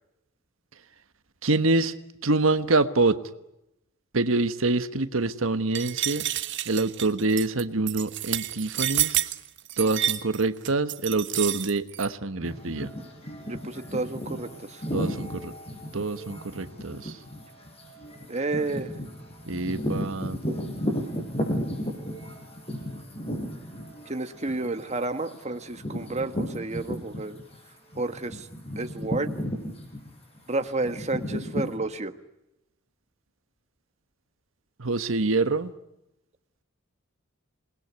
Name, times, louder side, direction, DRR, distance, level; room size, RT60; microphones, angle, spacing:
voice 1, 1.4-1.9 2.2-3.2 4.1-6.3 6.7-9.2 9.8-12.9 14.9-15.5 15.9-17.2 19.5-20.4 34.8-35.7, right 3 dB, 80° right, 10 dB, 1.3 m, -26 dB
sound 1, 5.8-12.1, right 13 dB, 65° right, 1.4 m, -29 dB
sound 2, 12.4-27.6 27.9-31.7, equal, 30° left, 6.0 m, -34 dB
voice 2, 13.4-14.8 18.3-18.9 24.0-27.4 27.9-28.5 28.7-29.3 30.5-32.1, right 2 dB, 35° right, 7 dB, 1.7 m, -31 dB
28.0 x 20.5 x 9.5 m, 0.89 s
head